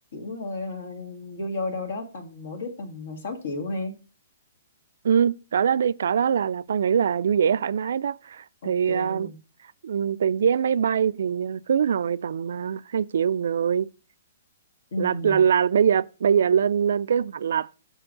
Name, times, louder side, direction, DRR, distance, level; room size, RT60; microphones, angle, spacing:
voice 1, 0.1-3.9 8.6-9.4 14.9-15.4, left 2 dB, 75° left, 1.9 m, -33 dB
voice 2, 5.0-9.3 9.8-13.9 15.0-17.8, right 7 dB, 70° right, 0.3 m, -23 dB
6.1 x 4.5 x 5.1 m
hypercardioid pair, 145°, 0 cm